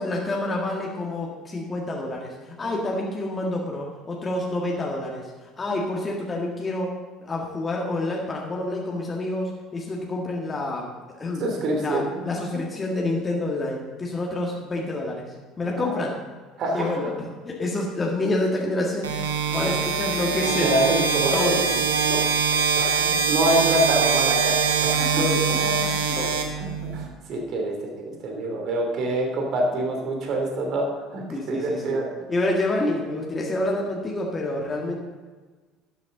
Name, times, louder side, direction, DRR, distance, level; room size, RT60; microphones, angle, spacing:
voice 1, 0.0-2.3 2.6-5.2 5.6-6.9 7.2-10.9 11.2-11.4 11.8-15.2 15.6-16.2 16.7-17.1 17.4-19.1 19.5-20.7 21.3-22.3 25.2-25.5 26.1-26.3 31.3-32.0 32.3-35.0, left 2 dB, 30° left, -2 dB, 1.8 m, -28 dB
voice 2, 11.4-12.2 15.6-16.0 16.6-17.1 19.6-19.8 20.6-21.4 22.7-26.7 26.9-30.9 31.1-31.2 31.5-32.1, right 1 dB, 55° right, 1 dB, 2.9 m, -26 dB
sound 1, 19.0-27.0, right 5 dB, 85° right, 1.1 m, -23 dB
12.0 x 8.2 x 3.8 m, 1.4 s
hypercardioid pair, 65°, 0 cm